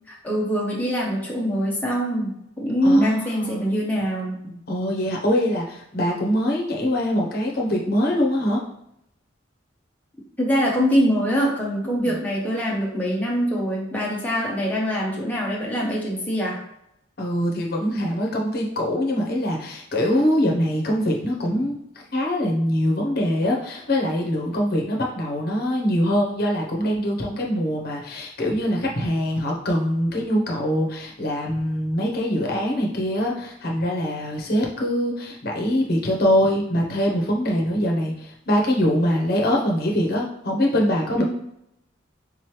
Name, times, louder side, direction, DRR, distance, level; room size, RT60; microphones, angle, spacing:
voice 1, 0.1-4.5 10.4-16.6 41.2-41.3, equal, 10° left, -4 dB, 0.7 m, -23 dB
voice 2, 2.8-3.6 4.7-8.7 11.8-12.2 17.2-21.7 22.1-41.2, equal, 50° left, -1 dB, 0.8 m, -23 dB
3.7 x 3.1 x 3.1 m, 0.77 s
head